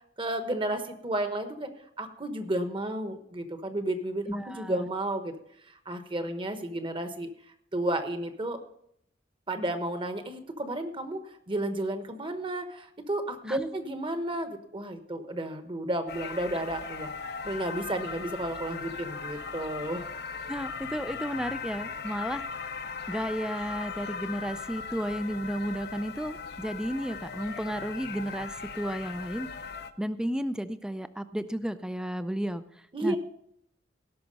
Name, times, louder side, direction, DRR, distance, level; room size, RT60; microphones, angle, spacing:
voice 1, 0.2-1.7 2.0-5.3 5.7-7.3 7.7-8.6 9.5-20.1 32.9-33.2, right 1 dB, 25° right, 8 dB, 1.1 m, -32 dB
voice 2, 4.3-4.9 13.5-13.7 20.5-22.4 23.1-29.5 30.0-32.6 33.0-33.2, equal, 5° right, 12 dB, 0.4 m, -33 dB
sound 1, 16.1-29.9, left 5 dB, 55° left, 0.7 m, -38 dB
17.5 x 5.9 x 5.3 m, 0.72 s
head